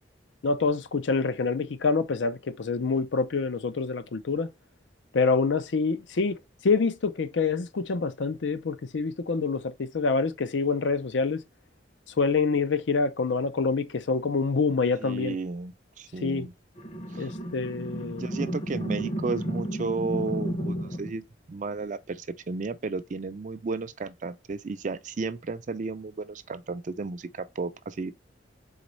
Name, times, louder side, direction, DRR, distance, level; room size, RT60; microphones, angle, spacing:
voice 1, 0.4-4.5 5.1-6.4 6.6-11.4 12.2-15.4 16.2-16.5 17.2-18.2, left 4 dB, 75° left, 0.5 m, -26 dB
voice 2, 15.0-16.5 17.1-17.3 18.2-21.2 21.5-28.1, right 4 dB, 40° right, 0.4 m, -33 dB
sound 1, 16.8-21.2, equal, 35° left, 0.8 m, -32 dB
4.0 x 4.0 x 3.1 m
head